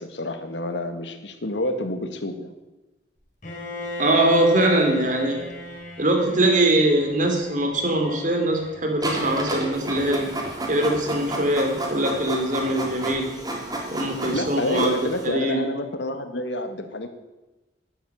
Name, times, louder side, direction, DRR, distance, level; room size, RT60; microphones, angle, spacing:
voice 1, 0.0-2.5 14.3-17.1, left 1 dB, 85° left, 8 dB, 1.7 m, -28 dB
Bowed string instrument, 3.4-9.4, left 1 dB, 45° left, 4.4 m, -35 dB
voice 2, 4.0-5.4 6.0-10.3 10.7-13.3 13.9-14.9 15.2-15.6, right 1 dB, 45° right, 4 dB, 3.0 m, -22 dB
Printer, 9.0-15.3, right 1 dB, 20° right, 3.3 m, -31 dB
11.0 x 10.5 x 9.3 m, 1.1 s
head